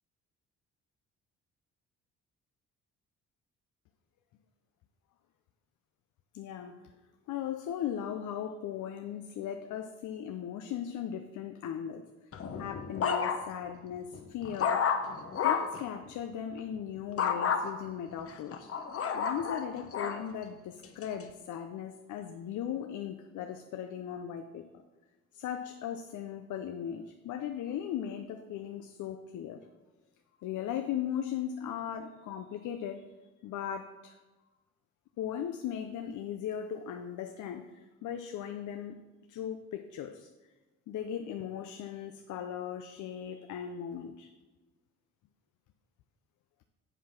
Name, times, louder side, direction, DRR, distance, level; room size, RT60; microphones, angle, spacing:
voice 1, 6.3-6.7 7.3-12.0 12.6-14.8 15.4-18.7 19.1-24.7 25.3-29.6 30.4-33.1 33.4-34.2 35.2-39.0 39.3-40.3 40.9-44.3, left 9 dB, 75° left, 6 dB, 0.6 m, -38 dB
sound 1, 12.3-13.7 14.1-15.8 17.2-17.6 18.3-20.2 20.8-21.2, left 6 dB, 50° left, 0.9 m, -31 dB
7.9 x 4.8 x 5.8 m, 1.2 s
cardioid pair, 90°, 30 cm